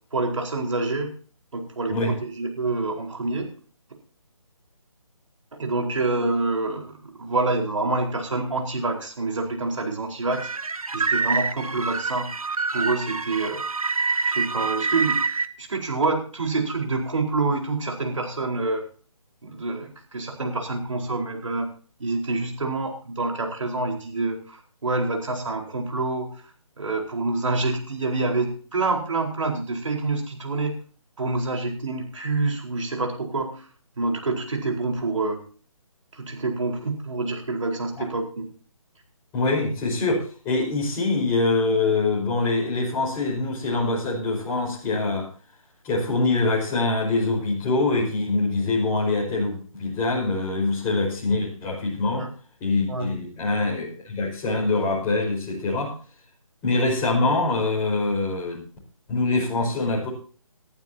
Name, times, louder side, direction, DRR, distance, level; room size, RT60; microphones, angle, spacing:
voice 1, 0.1-1.1 1.5-3.5 5.6-10.5 10.9-13.6 14.2-15.2 15.6-18.8 19.4-21.7 22.0-26.4 26.8-30.7 31.2-33.7 34.0-35.4 36.1-38.5 52.2-52.3 52.9-53.1, right 3 dB, 65° right, 2 dB, 4.5 m, -27 dB
sound 1, 10.3-15.5, right 4 dB, 85° right, 1.1 m, -26 dB
voice 2, 39.3-45.2 45.8-52.2 52.6-55.9 56.6-58.6 59.1-60.1, left 3 dB, 15° left, -3 dB, 5.0 m, -24 dB
19.5 x 12.0 x 2.8 m, 0.41 s
figure-of-eight pair, 155°, 18 cm